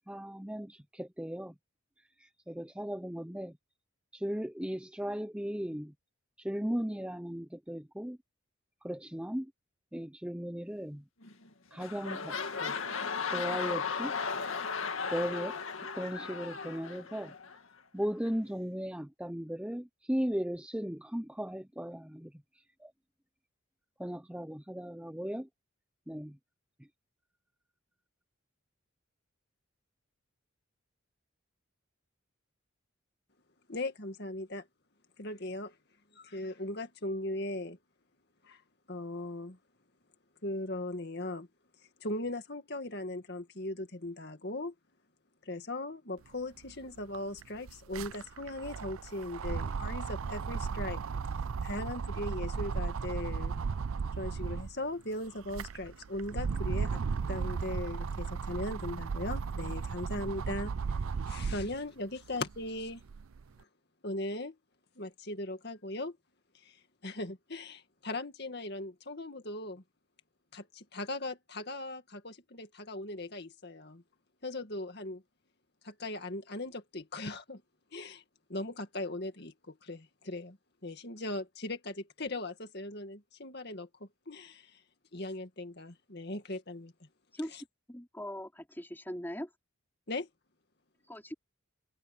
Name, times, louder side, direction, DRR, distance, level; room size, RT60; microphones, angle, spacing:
voice 1, 0.1-1.5 2.2-3.5 4.1-5.9 6.4-8.2 8.8-9.5 9.9-11.0 11.7-12.3 12.6-12.7 13.3-14.1 15.1-15.6 16.0-17.3 17.9-22.3 22.8-22.9 24.0-25.5 26.1-26.4, equal, 5° right, 0.7 m, -36 dB
sound 1, 11.2-11.5 11.7-17.6 18.3-18.4, left 5 dB, 75° left, 2.1 m, -36 dB
voice 2, 33.7-34.7 35.2-35.8 36.1-37.8 38.4-38.6 38.9-39.6 40.4-41.5 42.0-44.7 45.4-51.0 51.6-53.5 54.2-57.0 57.3-63.0 64.0-64.6 65.0-66.2 66.5-69.8 70.5-74.0 74.4-75.2 75.8-77.6 77.9-78.2 78.5-80.6 80.8-84.8 85.1-86.9 87.5-87.6 90.1-90.3, left 2 dB, 50° left, 2.0 m, -39 dB
sound 2, 46.6-46.7 47.0-54.8 55.3-61.8 62.3-63.4, right 5 dB, 85° right, 0.5 m, -35 dB
voice 3, 87.9-89.5 91.1-91.3, equal, 10° left, 4.2 m, -40 dB
open air
head